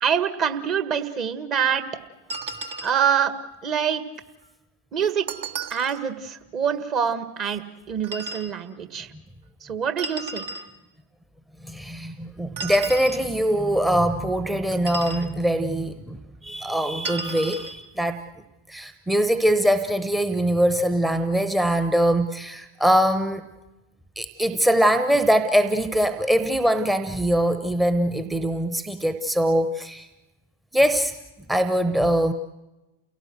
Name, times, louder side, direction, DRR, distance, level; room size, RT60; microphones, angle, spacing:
voice 1, 0.0-1.8 2.8-3.3 3.6-4.0 4.9-5.3 5.7-9.1 9.6-10.5, right 8 dB, 35° right, 10 dB, 1.6 m, -25 dB
sound 1, 2.3-3.1 5.3-6.0 8.0-8.5 10.0-10.7 12.6-13.3 14.7-15.3 17.0-17.7, right 3 dB, 60° right, 1.6 m, -34 dB
voice 2, 11.6-18.2 18.7-23.4 24.2-30.1 30.7-31.1 31.5-32.3, equal, 5° right, 9 dB, 0.9 m, -22 dB
29.5 x 17.5 x 7.8 m, 1.1 s
figure-of-eight pair, 90°, 0 cm